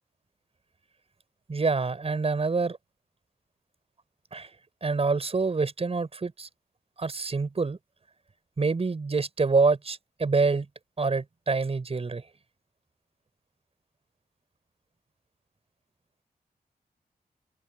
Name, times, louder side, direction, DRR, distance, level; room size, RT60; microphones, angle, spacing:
voice 1, 1.5-2.8 4.3-4.5 4.8-6.5 7.0-7.8 8.6-10.6 11.0-12.2, right 4 dB, 40° right, 6.8 m, -26 dB
open air
wide cardioid pair, 150°, 15 cm